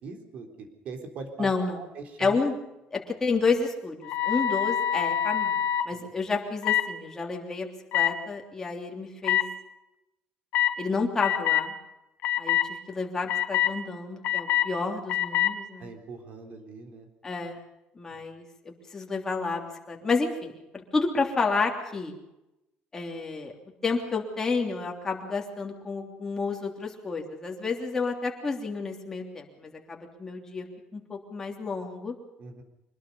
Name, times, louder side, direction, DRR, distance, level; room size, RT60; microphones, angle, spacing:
voice 1, 0.0-1.5 1.7-2.4 5.9-6.1 15.8-17.1 18.1-18.2 32.4-32.6, right 4 dB, 45° right, 5 dB, 3.8 m, -41 dB
voice 2, 1.4-1.8 2.2-2.6 2.9-9.5 10.8-11.7 12.4-15.9 17.2-17.6 17.9-22.1 22.9-23.5 23.8-30.7 30.9-32.1, left 4 dB, 15° left, 1 dB, 3.2 m, -30 dB
sound 1, 4.0-5.9 6.6-6.9 7.9-8.1 9.2-9.4 10.5-10.7 11.2-11.7 12.2-12.7 13.3-13.7 14.2-14.7 15.1-15.5, left 11 dB, 55° left, 1.4 m, -25 dB
24.5 x 20.5 x 5.4 m, 0.92 s
cardioid pair, 165°, 3 cm